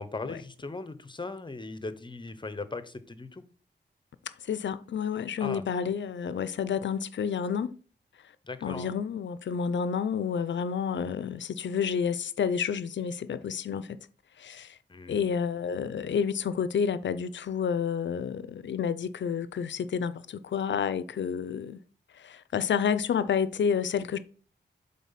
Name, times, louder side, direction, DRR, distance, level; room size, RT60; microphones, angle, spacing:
voice 1, 0.0-3.4 5.4-5.6 8.4-8.9 14.9-15.3, left 3 dB, 25° left, 0.8 m, -38 dB
voice 2, 4.4-7.7 8.6-14.0 14.4-14.8 15.1-21.8 22.1-24.2, left 7 dB, 80° left, 0.5 m, -30 dB
7.4 x 3.9 x 5.6 m
wide cardioid pair, 95°, 19 cm